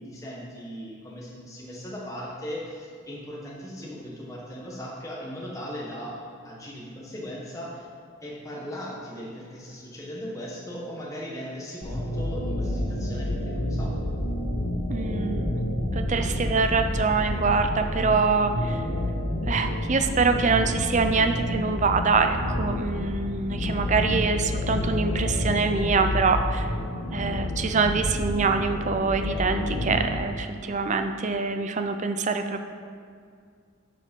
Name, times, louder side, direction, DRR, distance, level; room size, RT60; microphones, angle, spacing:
voice 1, 0.0-6.2 6.4-7.9 8.2-13.9, equal, 15° left, -5 dB, 1.3 m, -38 dB
sound 1, 11.8-30.3, left 1 dB, 90° left, 1.8 m, -29 dB
voice 2, 14.9-15.6 15.9-18.8 19.5-26.7 27.1-32.6, right 4 dB, 35° right, 7 dB, 0.5 m, -25 dB
11.5 x 5.0 x 5.3 m, 2.2 s
head